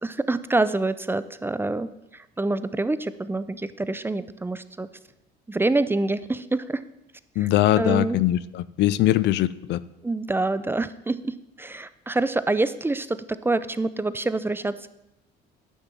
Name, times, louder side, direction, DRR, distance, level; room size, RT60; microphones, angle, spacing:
voice 1, 0.0-4.9 5.5-6.8 7.4-7.5 7.8-8.2 10.0-14.9, right 2 dB, 10° right, 14 dB, 0.5 m, -26 dB
voice 2, 7.4-9.8, left 14 dB, 70° left, 18 dB, 0.5 m, -21 dB
10.0 x 6.1 x 7.4 m, 0.89 s
cardioid pair, 100°, 19 cm